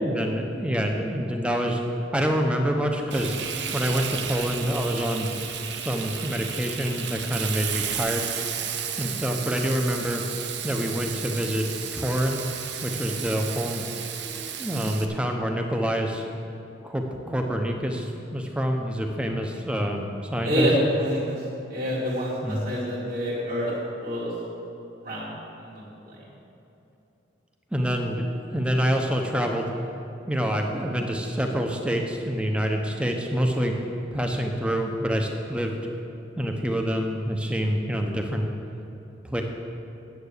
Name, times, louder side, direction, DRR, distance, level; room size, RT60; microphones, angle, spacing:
voice 1, 0.0-1.8 2.1-3.3 3.7-5.3 5.7-8.3 9.0-10.2 10.6-11.7 11.9-12.4 12.8-13.8 14.2-16.2 16.8-20.7 22.4-22.6 27.7-29.7 30.3-33.7 34.1-35.8 36.4-38.5 39.3-39.4, equal, 5° right, 2 dB, 0.8 m, -26 dB
Frying (food), 3.1-15.1, right 8 dB, 65° right, 0.7 m, -33 dB
voice 2, 20.4-24.3 25.0-26.2, equal, 45° right, -7 dB, 2.0 m, -27 dB
9.4 x 7.9 x 6.7 m, 2.9 s
head